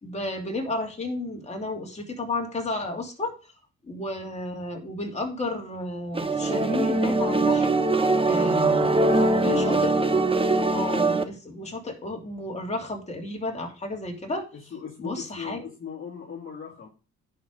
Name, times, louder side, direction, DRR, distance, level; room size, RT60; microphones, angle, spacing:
voice 1, 0.0-3.3 3.8-9.0 9.4-9.9 10.7-14.5 15.0-15.6, left 2 dB, 20° left, 1 dB, 2.9 m, -32 dB
sound 1, 6.1-11.2, right 2 dB, 20° right, 1.0 m, -22 dB
voice 2, 9.0-9.8 14.7-16.9, left 6 dB, 45° left, -1 dB, 2.1 m, -36 dB
10.5 x 5.3 x 5.2 m, 0.34 s
cardioid pair, 90°, 30 cm